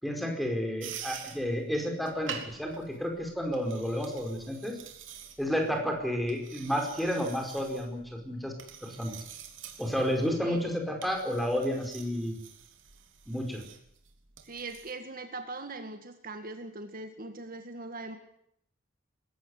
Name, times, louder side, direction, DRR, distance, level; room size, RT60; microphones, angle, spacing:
voice 1, 0.0-4.8 5.4-8.5 8.8-9.1 9.8-12.4 13.3-13.6, equal, ahead, 3 dB, 4.9 m, -31 dB
sound 1, 0.8-14.9, right 7 dB, 75° right, 3.2 m, -47 dB
voice 2, 14.4-18.2, right 2 dB, 50° right, 6 dB, 2.0 m, -41 dB
21.0 x 16.5 x 9.8 m, 0.73 s
head